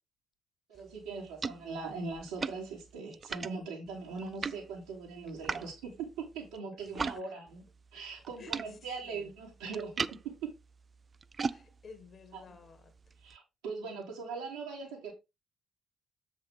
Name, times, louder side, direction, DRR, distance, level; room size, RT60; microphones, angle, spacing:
voice 1, 0.7-7.6 7.9-10.3 12.3-12.4 13.2-15.1, right 4 dB, 70° right, 3.0 m, -41 dB
sound 1, 0.8-7.2 7.5-13.4, right 5 dB, 30° right, 0.4 m, -41 dB
voice 2, 7.0-7.3 8.4-8.6 9.0-9.3 11.5-12.9, left 5 dB, 40° left, 1.7 m, -53 dB
7.6 x 5.6 x 3.6 m
figure-of-eight pair, 45°, 0 cm